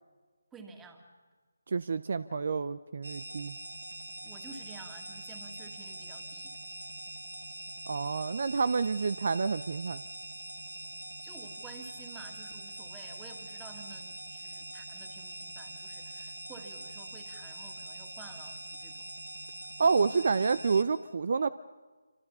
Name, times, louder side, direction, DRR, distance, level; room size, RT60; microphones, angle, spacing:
voice 1, 0.5-1.1 4.2-6.6 11.2-19.1 20.1-20.3, right 4 dB, 10° right, 4 dB, 2.3 m, -51 dB
voice 2, 1.7-3.6 7.9-10.0 19.8-21.5, right 4 dB, 50° right, 16 dB, 0.6 m, -28 dB
sound 1, 3.0-20.8, right 1 dB, 75° right, 3.0 m, -43 dB
27.0 x 25.5 x 5.6 m, 1.4 s
figure-of-eight pair, 155°, 0 cm